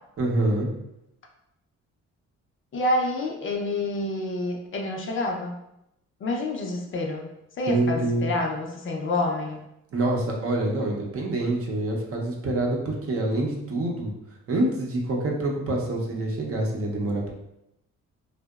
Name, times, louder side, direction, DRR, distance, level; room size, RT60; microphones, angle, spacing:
voice 1, 0.2-0.7 7.7-8.3 9.9-14.1 14.5-17.3, right 2 dB, 50° right, -1 dB, 0.6 m, -26 dB
voice 2, 2.7-5.5 6.2-7.3 7.6-9.6, left 2 dB, 45° left, 1 dB, 0.4 m, -28 dB
2.7 x 2.0 x 2.2 m, 0.85 s
cardioid pair, 90°, 30 cm